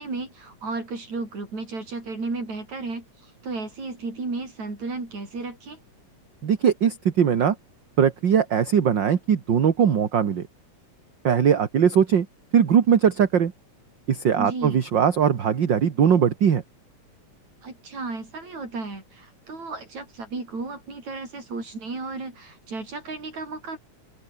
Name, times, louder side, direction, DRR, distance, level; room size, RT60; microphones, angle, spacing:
voice 1, 0.0-5.8 14.4-14.8 17.6-23.8, right 3 dB, 70° right, 9.3 m, -34 dB
voice 2, 6.4-7.6 8.0-10.5 11.2-12.3 12.5-13.5 14.1-16.6, right 8 dB, 45° right, 2.0 m, -20 dB
open air
omnidirectional pair, 3.3 m